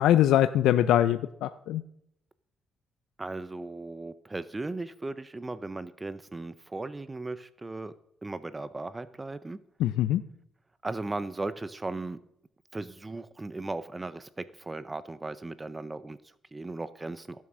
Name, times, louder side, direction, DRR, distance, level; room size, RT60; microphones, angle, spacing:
voice 1, 0.0-1.8 9.8-10.2, left 12 dB, 85° left, 12 dB, 0.4 m, -23 dB
voice 2, 3.2-7.9 8.2-9.6 10.8-12.2 12.7-17.4, right 2 dB, 20° right, 14 dB, 0.6 m, -37 dB
15.0 x 7.4 x 6.1 m, 0.75 s
cardioid pair, 90°, 0 cm